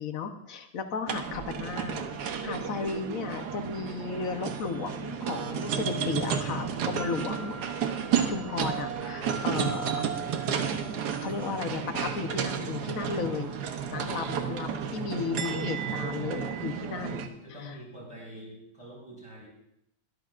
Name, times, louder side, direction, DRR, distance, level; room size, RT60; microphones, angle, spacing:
voice 1, 0.0-7.5 8.3-10.1 11.2-13.5 13.9-17.3 17.6-17.7, left 5 dB, 60° left, 7 dB, 1.4 m, -34 dB
sound 1, 1.1-17.3, right 7 dB, 90° right, 1.5 m, -32 dB
voice 2, 13.8-14.1 16.9-19.5, left 1 dB, 20° right, -3 dB, 5.9 m, -45 dB
22.0 x 13.0 x 2.5 m, 0.79 s
omnidirectional pair, 1.7 m